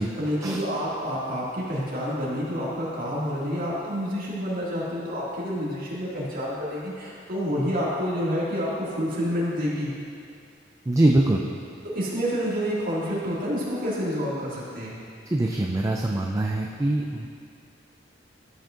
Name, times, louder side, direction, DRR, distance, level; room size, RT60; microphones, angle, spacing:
voice 1, 0.2-9.9 11.8-15.0, equal, 50° right, -7 dB, 2.2 m, -28 dB
voice 2, 10.9-11.4 15.3-17.3, right 1 dB, 15° right, 0 dB, 0.4 m, -23 dB
13.0 x 7.7 x 2.5 m, 2.4 s
head